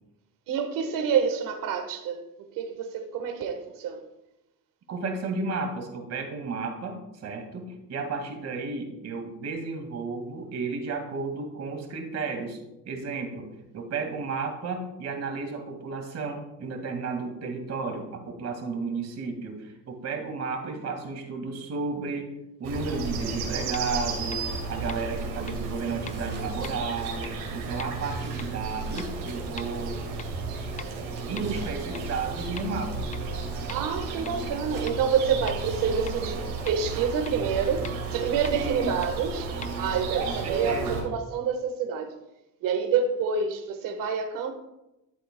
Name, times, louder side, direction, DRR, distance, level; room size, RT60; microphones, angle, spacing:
voice 1, 0.5-4.0 24.9-25.0 25.3-25.5 33.7-39.5 39.8-42.1 42.6-44.5, right 6 dB, 70° right, 6 dB, 1.4 m, -28 dB
voice 2, 4.9-12.6 12.8-13.5 13.7-22.3 22.6-30.0 31.3-33.1 38.5-39.0 40.2-41.1, right 4 dB, 50° right, 4 dB, 2.1 m, -33 dB
sound 1, 22.6-41.0, right 4 dB, 85° right, 2.3 m, -33 dB
sound 2, 23.7-23.8 24.3-24.4 24.9-25.0 25.5-25.6 26.1-26.2 26.6-26.7 27.2-27.3 27.8-27.9 28.4-28.5 29.0-29.1 29.6-29.7 30.2-30.3 30.8-30.9 31.4-31.5 31.9-32.0 32.6-32.7 33.1-33.2 33.7-33.8 34.2-34.3 34.9-35.0 35.5-35.6 36.1-36.2 36.7-36.8 37.3-37.4 37.8-37.9 38.4-38.5 39.0-39.1 39.6-39.7, left 7 dB, 25° left, 0.3 m, -40 dB
sound 3, 26.0-27.2 28.0-29.6 30.4-30.7 31.4-32.6 33.3-35.6, right 4 dB, 30° right, 2.2 m, -52 dB
12.0 x 7.8 x 2.2 m, 0.91 s
supercardioid pair, 95°, 34 cm